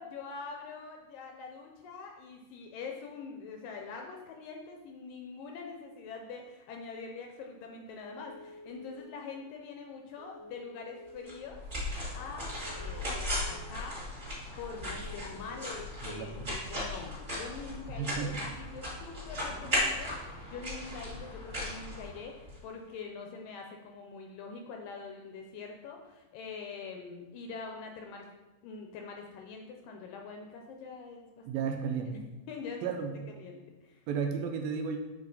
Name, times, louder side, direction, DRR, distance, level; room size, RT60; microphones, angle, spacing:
voice 1, 0.0-11.7 11.9-14.1 14.6-28.3 28.6-31.7 32.1-32.2 32.5-33.1 33.4-34.0, left 5 dB, 80° left, 2 dB, 2.1 m, -44 dB
Telephone, 7.9-9.0 10.2-11.3 12.4-13.5 14.7-15.8, left 1 dB, 5° right, 0.5 m, -50 dB
sound 1, 11.3-22.6, left 1 dB, 25° right, 2.2 m, -37 dB
voice 2, 16.0-16.5 18.0-18.3 31.5-32.2 32.8-33.2 34.1-35.0, right 6 dB, 80° right, 4 dB, 2.3 m, -33 dB
6.6 x 5.6 x 4.0 m, 1.1 s
omnidirectional pair, 4.4 m